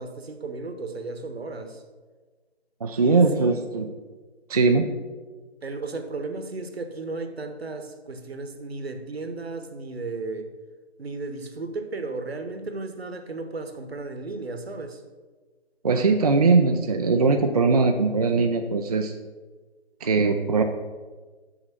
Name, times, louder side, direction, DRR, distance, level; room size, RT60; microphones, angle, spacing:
voice 1, 0.0-1.8 3.0-3.6 5.6-10.5 11.0-15.0, right 3 dB, 65° right, 7 dB, 1.1 m, -34 dB
voice 2, 2.8-3.9 4.5-4.9 15.8-19.1 20.0-20.6, right 4 dB, 35° right, 4 dB, 0.4 m, -20 dB
6.4 x 6.2 x 5.8 m, 1.4 s
figure-of-eight pair, 140°, 33 cm